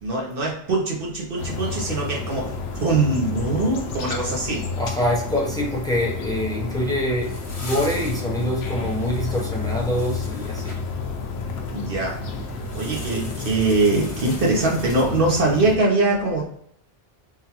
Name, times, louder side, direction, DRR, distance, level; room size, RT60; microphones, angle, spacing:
voice 1, 0.0-4.7 11.7-12.2 12.7-16.5, right 2 dB, 65° right, -1 dB, 0.8 m, -22 dB
sound 1, 1.4-15.8, left 4 dB, 85° left, 0.8 m, -31 dB
voice 2, 4.8-10.8, equal, 5° left, -2 dB, 0.5 m, -25 dB
sound 2, 6.8-10.8 12.5-15.5, left 1 dB, 35° left, 0.8 m, -42 dB
3.7 x 2.2 x 2.8 m, 0.68 s
omnidirectional pair, 1.1 m